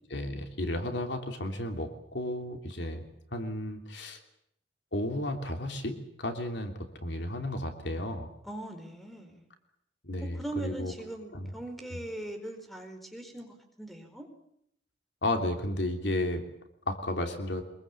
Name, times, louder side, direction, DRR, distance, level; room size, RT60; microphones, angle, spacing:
voice 1, 0.1-3.0 3.3-4.2 4.9-6.7 7.0-8.3 10.0-10.9 11.3-11.5 15.2-16.4 16.9-17.6, left 1 dB, 70° left, 5 dB, 3.1 m, -33 dB
voice 2, 8.4-9.5 10.3-14.3, right 1 dB, ahead, 6 dB, 4.5 m, -40 dB
24.5 x 22.0 x 8.6 m, 0.71 s
head